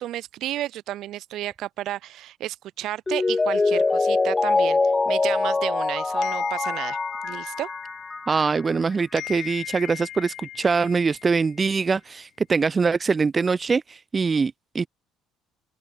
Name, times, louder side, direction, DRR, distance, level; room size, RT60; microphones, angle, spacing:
voice 1, 0.0-4.8 5.0-7.0 7.2-7.7, right 13 dB, 65° right, 3.1 m, -32 dB
Mallet percussion, 3.1-8.6 8.9-9.0, left 3 dB, 20° left, 2.5 m, -24 dB
sound 1, 6.2-8.8 9.2-11.7, left 14 dB, 70° left, 6.7 m, -38 dB
voice 2, 8.3-14.9, right 4 dB, 30° right, 0.7 m, -23 dB
open air
supercardioid pair, 80°, 0 cm